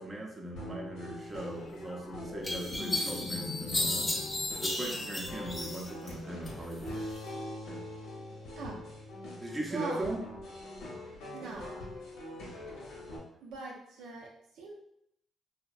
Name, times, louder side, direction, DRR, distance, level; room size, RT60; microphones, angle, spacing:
voice 1, 0.0-4.1 4.6-7.0 9.4-10.2, right 1 dB, 25° right, -1 dB, 0.5 m, -39 dB
sound 1, 0.6-13.2, left 1 dB, 85° left, 0.9 m, -44 dB
sound 2, 1.5-6.0 8.4-8.6, left 4 dB, 65° left, 0.3 m, -44 dB
sound 3, 1.7-1.8 2.4-6.1 6.5-7.2, left 1 dB, 25° left, 0.6 m, -34 dB
voice 2, 9.7-10.0 11.3-11.9 13.4-14.3 14.5-14.7, right 3 dB, 85° right, -2 dB, 0.5 m, -41 dB
2.6 x 2.1 x 2.3 m, 0.74 s
cardioid pair, 90°, 0 cm